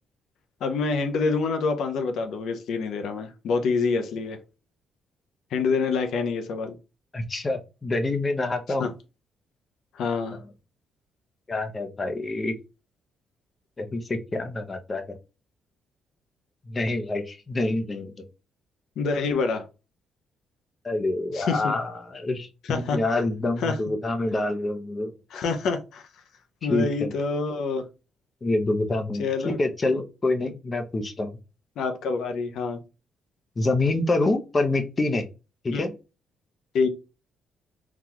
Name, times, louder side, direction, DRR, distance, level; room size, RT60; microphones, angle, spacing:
voice 1, 0.6-4.4 5.5-6.7 8.8-8.9 10.0-10.4 19.0-19.7 21.3-21.7 22.7-23.2 23.6-23.8 25.3-26.0 26.6-27.8 29.2-29.6 31.8-32.8 35.7-35.8 36.7-36.9, left 4 dB, 75° left, 0.6 m, -26 dB
voice 2, 7.1-8.9 11.5-12.5 13.8-15.0 16.7-18.2 20.8-25.1 26.7-27.1 28.4-31.4 33.6-35.2 35.6-35.9, left 2 dB, 30° left, 0.6 m, -26 dB
3.9 x 2.3 x 2.9 m
cardioid pair, 90°, 0 cm